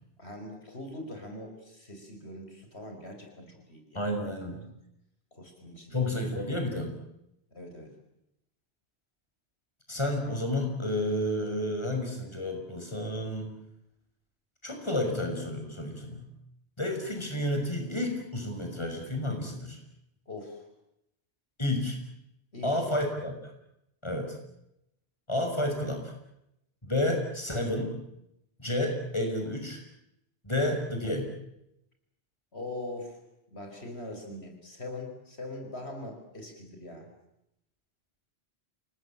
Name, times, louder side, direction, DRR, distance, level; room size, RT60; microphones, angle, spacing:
voice 1, 0.2-4.1 5.3-6.1 6.3-6.7 7.5-7.9 20.3-20.7 22.5-22.9 32.5-33.2 33.5-37.1, left 2 dB, 75° left, 4 dB, 5.4 m, -42 dB
voice 2, 3.9-4.6 5.9-6.9 9.9-13.5 14.6-16.3 16.8-19.8 21.6-22.0 22.6-23.5 24.0-24.4 25.3-26.1 26.8-27.9 28.6-29.8 30.4-31.3, left 1 dB, 25° left, 3 dB, 5.8 m, -30 dB
28.5 x 19.5 x 8.8 m, 0.83 s
omnidirectional pair, 1.1 m